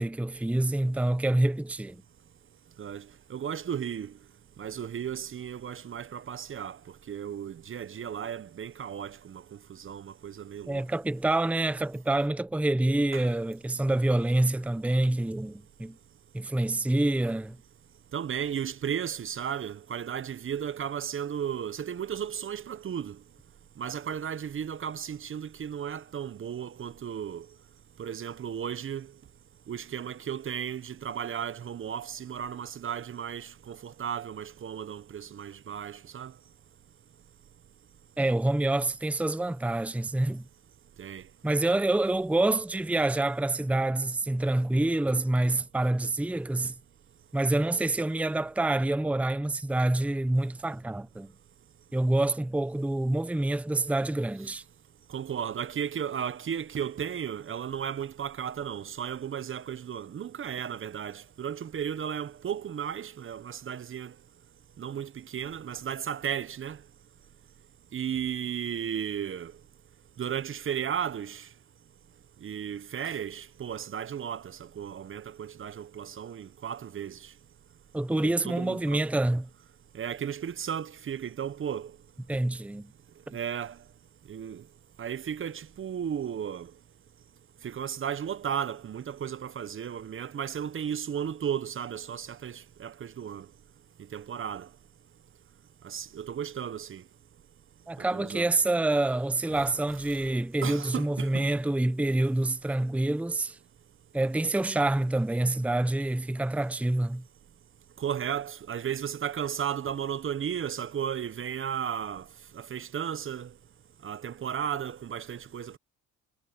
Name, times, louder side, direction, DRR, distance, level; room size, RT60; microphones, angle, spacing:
voice 1, 0.0-2.0 10.7-16.0 16.3-17.6 38.2-40.4 41.4-46.7 47.3-51.3 51.9-54.6 77.9-79.5 82.3-82.9 83.3-83.4 97.9-103.6 104.1-107.2, right 2 dB, 5° right, 0.8 m, -27 dB
voice 2, 2.8-4.1 4.6-6.8 7.1-9.4 9.7-10.8 13.1-13.3 18.1-23.2 23.8-27.5 28.0-29.1 29.7-36.3 41.0-41.2 55.1-64.1 64.8-66.8 67.9-69.5 70.2-71.5 72.4-77.3 78.2-79.0 79.9-81.9 83.3-83.8 84.3-84.6 85.0-86.7 87.6-93.5 94.1-94.7 95.8-97.0 98.1-98.5 99.5-99.6 100.6-101.4 108.0-112.2 112.5-113.5 114.0-115.8, right 8 dB, 40° right, 0.9 m, -34 dB
supercardioid pair, 80°, 32 cm